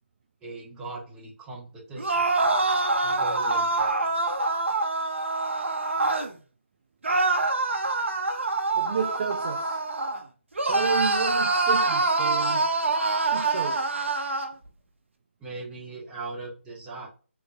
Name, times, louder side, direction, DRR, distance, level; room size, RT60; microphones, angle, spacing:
voice 1, 0.4-2.3 3.0-4.2 15.4-17.1, right 3 dB, 10° right, 0.9 m, -39 dB
sound 1, 2.0-6.3 7.0-10.2 10.5-14.5, right 3 dB, 70° right, 0.7 m, -25 dB
voice 2, 8.8-9.8 10.7-12.6 13.2-13.9, right 6 dB, 40° right, 0.3 m, -31 dB
3.7 x 2.7 x 2.3 m
figure-of-eight pair, 150°, 7 cm